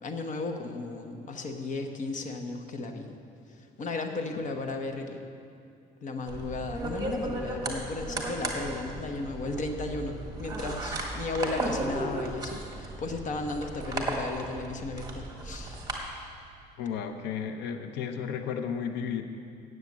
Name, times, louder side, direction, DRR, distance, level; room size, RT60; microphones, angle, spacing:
voice 1, 0.0-3.2 3.8-5.2 6.0-15.8, left 3 dB, 50° left, 5 dB, 1.1 m, -35 dB
sound 1, 6.3-16.0, right 2 dB, 20° right, 1.7 m, -35 dB
voice 2, 16.8-19.2, left 7 dB, 85° left, 7 dB, 0.7 m, -33 dB
9.5 x 8.0 x 7.4 m, 2.4 s
cardioid pair, 110°, 17 cm